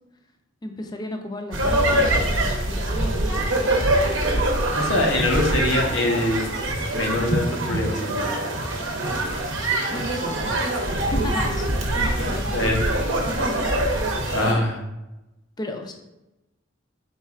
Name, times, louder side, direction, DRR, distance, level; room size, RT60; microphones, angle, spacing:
voice 1, 0.6-3.6 4.7-5.3 9.9-10.6 10.9-12.7 14.4-14.6 15.6-15.9, left 1 dB, 20° left, 4 dB, 0.4 m, -34 dB
sound 1, 1.5-14.5, right 1 dB, 80° right, 0.8 m, -24 dB
voice 2, 4.7-6.5 6.9-8.5 12.5-12.8 14.3-14.8, left 1 dB, 90° left, 1 dB, 0.8 m, -24 dB
4.3 x 4.0 x 2.3 m, 0.96 s
head